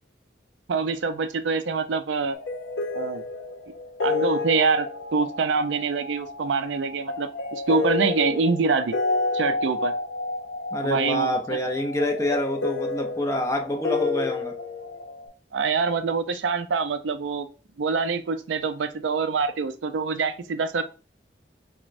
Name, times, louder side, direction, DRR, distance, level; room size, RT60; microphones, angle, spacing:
voice 1, 0.7-2.4 2.9-3.2 4.0-4.9 5.1-9.0 9.3-9.9 10.8-11.3 15.5-17.5 17.8-20.8, right 5 dB, 85° right, 0.4 m, -25 dB
sound 1, 2.3-15.3, left 3 dB, 85° left, 0.8 m, -30 dB
voice 2, 10.7-14.6, left 1 dB, 15° left, 0.5 m, -26 dB
5.9 x 2.2 x 2.6 m
head